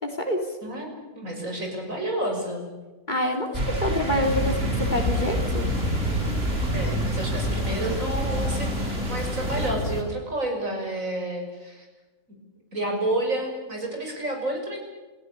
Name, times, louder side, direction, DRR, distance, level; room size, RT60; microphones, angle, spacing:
voice 1, 0.0-0.4 3.1-3.5 3.8-5.7, equal, 30° left, 3 dB, 3.6 m, -26 dB
voice 2, 0.6-2.7 6.7-11.9 12.7-14.8, right 1 dB, 65° right, 2 dB, 6.7 m, -30 dB
sound 1, 3.5-9.7, right 1 dB, 45° right, 3.4 m, -30 dB
sound 2, 4.2-10.0, left 1 dB, 55° left, 5.9 m, -28 dB
29.5 x 16.0 x 8.4 m, 1.2 s
omnidirectional pair, 1.5 m